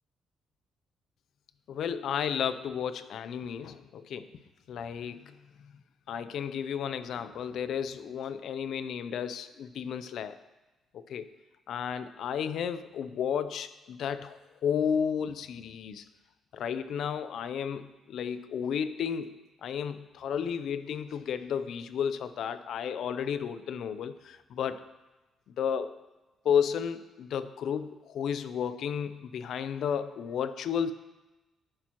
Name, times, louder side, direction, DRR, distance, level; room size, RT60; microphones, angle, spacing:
voice 1, 1.7-4.3 4.7-5.8 6.1-10.4 10.9-11.3 11.7-16.0 16.5-24.8 25.6-26.0 26.4-30.9, left 7 dB, 70° left, 13 dB, 0.5 m, -33 dB
10.0 x 9.6 x 3.0 m, 1.1 s
cardioid pair, 90°, 0 cm